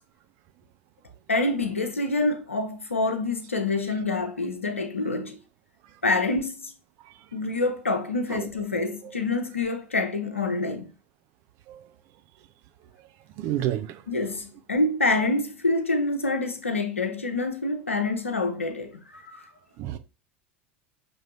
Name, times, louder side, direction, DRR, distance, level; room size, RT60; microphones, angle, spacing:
voice 1, 1.3-5.4 6.0-6.7 7.3-10.9 14.1-19.5, left 2 dB, 85° left, 0.7 m, -26 dB
voice 2, 13.4-13.9 19.8-20.0, right 12 dB, 45° right, 0.5 m, -28 dB
6.1 x 3.1 x 2.6 m
figure-of-eight pair, 80°, 7 cm